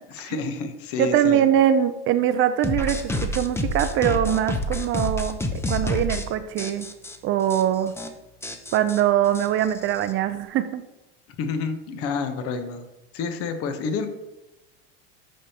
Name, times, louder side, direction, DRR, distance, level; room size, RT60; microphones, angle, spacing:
voice 1, 0.1-1.4 11.4-12.8 13.1-14.1, left 4 dB, 50° left, 7 dB, 1.0 m, -29 dB
voice 2, 1.0-6.9 7.2-7.9 8.7-10.8, right 10 dB, 45° right, 11 dB, 0.5 m, -22 dB
sound 1, 2.6-6.3 6.6-7.2 7.5-7.6 7.9-8.1 8.4-10.1, left 1 dB, 10° left, 0.7 m, -28 dB
10.5 x 3.6 x 2.9 m, 0.95 s
hypercardioid pair, 100°, 30 cm